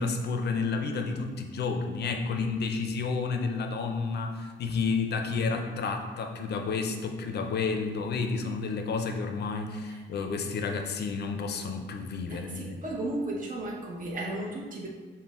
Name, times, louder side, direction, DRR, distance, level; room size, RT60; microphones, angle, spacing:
voice 1, 0.0-12.8, left 4 dB, 55° left, 4 dB, 0.5 m, -31 dB
voice 2, 12.3-14.9, right 1 dB, 40° right, -2 dB, 0.9 m, -34 dB
5.8 x 2.2 x 3.6 m, 1.4 s
cardioid pair, 135°, 20 cm